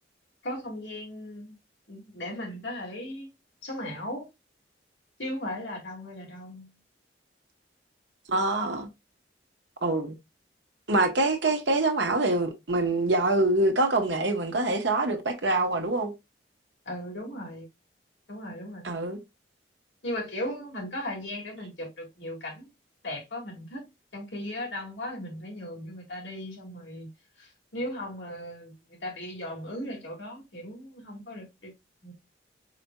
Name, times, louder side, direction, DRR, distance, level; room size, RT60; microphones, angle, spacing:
voice 1, 0.4-1.6 1.9-3.3 3.6-4.3 5.2-6.8 16.9-17.7 18.3-18.9 20.0-22.7 23.0-23.9 24.1-27.1 27.4-31.7 32.0-32.1, left 1 dB, 75° left, 2.0 m, -37 dB
voice 2, 8.3-8.9 9.8-10.1 10.9-16.1 18.8-19.2, right 2 dB, 75° right, 1.0 m, -25 dB
5.0 x 4.1 x 2.2 m
head